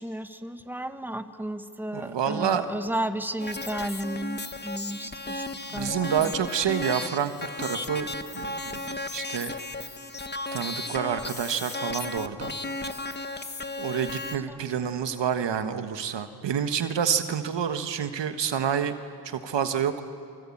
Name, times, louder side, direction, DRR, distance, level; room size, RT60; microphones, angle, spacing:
voice 1, 0.0-6.3 14.5-15.0 15.6-15.8, right 1 dB, 5° right, 8 dB, 1.6 m, -34 dB
voice 2, 1.9-2.7 5.6-8.8 9.1-9.5 10.5-12.5 13.8-18.9 19.2-20.0, right 8 dB, 90° right, 9 dB, 1.5 m, -28 dB
sound 1, 3.4-14.4, left 2 dB, 25° left, 1.5 m, -35 dB
28.0 x 24.5 x 8.7 m, 2.5 s
cardioid pair, 60°, 42 cm